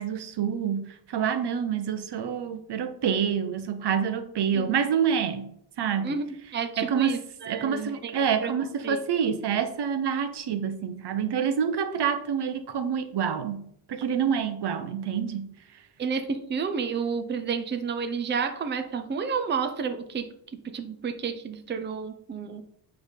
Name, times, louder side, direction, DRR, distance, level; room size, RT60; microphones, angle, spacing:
voice 1, 0.0-5.5 5.8-6.2 6.8-7.2 7.5-15.5, right 7 dB, 70° right, 0.9 m, -27 dB
voice 2, 6.5-8.1 8.4-8.5 8.8-9.0 16.0-20.3 20.6-22.6, right 5 dB, 25° right, 0.6 m, -30 dB
8.7 x 3.4 x 5.2 m
wide cardioid pair, 145°, 42 cm